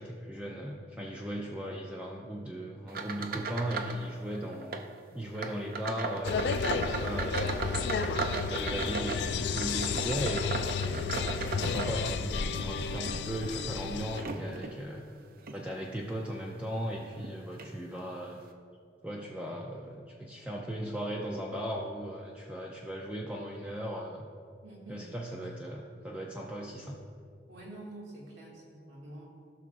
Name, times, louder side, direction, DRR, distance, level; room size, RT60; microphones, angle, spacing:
voice 1, 0.0-4.8 5.1-7.9 8.5-11.2 11.5-15.0 15.5-18.4 19.0-24.3 24.9-27.0, equal, 5° right, -2 dB, 0.5 m, -37 dB
sound 1, 2.9-4.1 4.3-4.9 5.3-12.4 12.9-14.8 15.4-15.6 16.2-16.3 17.2-17.3 17.6-17.7, right 4 dB, 55° right, 0.6 m, -37 dB
sound 2, 6.2-14.2, left 5 dB, 65° left, 0.4 m, -32 dB
voice 2, 24.6-25.1 27.5-29.2, right 2 dB, 75° right, -4 dB, 2.2 m, -47 dB
15.5 x 6.0 x 2.5 m, 2.4 s
head